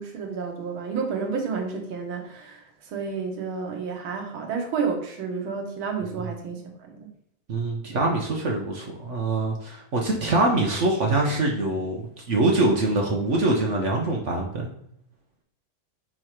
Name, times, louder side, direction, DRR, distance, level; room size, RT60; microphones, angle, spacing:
voice 1, 0.0-7.1, right 5 dB, 90° right, 3 dB, 1.9 m, -31 dB
voice 2, 7.5-14.7, right 2 dB, 50° right, 0 dB, 0.9 m, -24 dB
4.9 x 4.6 x 4.4 m, 0.74 s
omnidirectional pair, 2.2 m